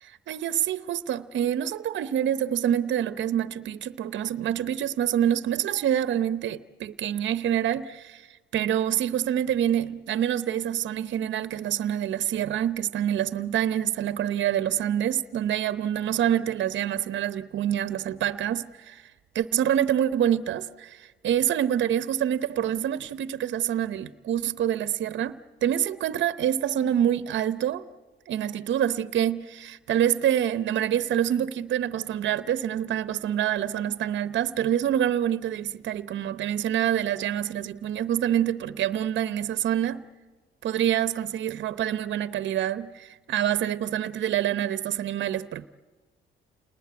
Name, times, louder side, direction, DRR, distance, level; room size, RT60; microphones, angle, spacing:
voice 1, 0.0-8.3 8.5-19.0 19.3-27.9 28.3-40.0 40.6-45.7, right 10 dB, 65° right, 0.8 m, -26 dB
29.0 x 19.5 x 9.5 m
cardioid pair, 90°, 20 cm